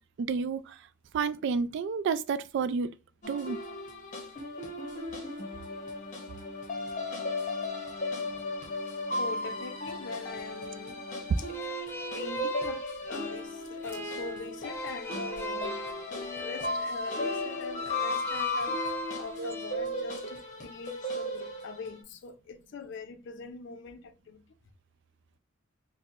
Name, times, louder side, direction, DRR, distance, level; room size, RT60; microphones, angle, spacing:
voice 1, 0.2-0.8 1.1-2.9 3.3-3.6 19.4-19.5, right 5 dB, 65° right, 0.3 m, -30 dB
sound 1, 3.2-22.0, left 2 dB, 40° left, 0.8 m, -36 dB
voice 2, 8.7-11.0 11.4-11.5 12.1-15.8 16.4-24.4, left 4 dB, 65° left, 0.4 m, -42 dB
sound 2, 11.5-19.7, equal, 10° left, 0.5 m, -39 dB
4.3 x 2.0 x 2.4 m
head